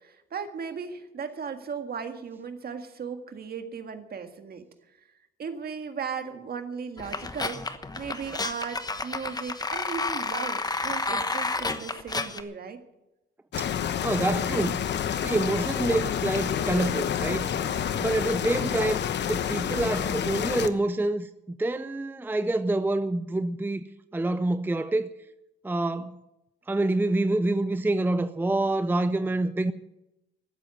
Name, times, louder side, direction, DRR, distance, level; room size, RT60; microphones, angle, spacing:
voice 1, 0.0-4.7 5.4-7.6 8.0-12.8, right 6 dB, 50° right, 1.8 m, -36 dB
sound 1, 7.0-12.4, left 3 dB, 20° left, 1.1 m, -31 dB
sound 2, 13.5-20.7, left 9 dB, 60° left, 1.0 m, -28 dB
voice 2, 14.0-14.9 15.2-17.5 18.0-23.8 24.1-25.1 25.6-26.2 26.7-29.7, right 2 dB, 10° right, 0.6 m, -27 dB
14.5 x 8.1 x 9.5 m
cardioid pair, 90°, 20 cm